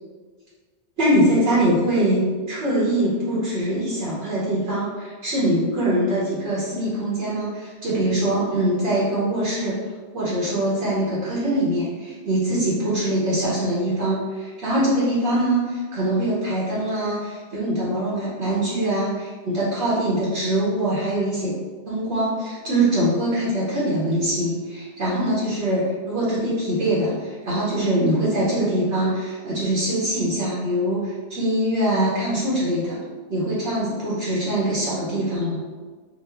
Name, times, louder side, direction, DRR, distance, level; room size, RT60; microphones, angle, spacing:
voice 1, 1.0-9.8 10.1-21.6 21.9-33.0 33.3-35.6, right 1 dB, 85° right, -9 dB, 1.3 m, -23 dB
5.3 x 2.0 x 3.3 m, 1.5 s
omnidirectional pair, 1.1 m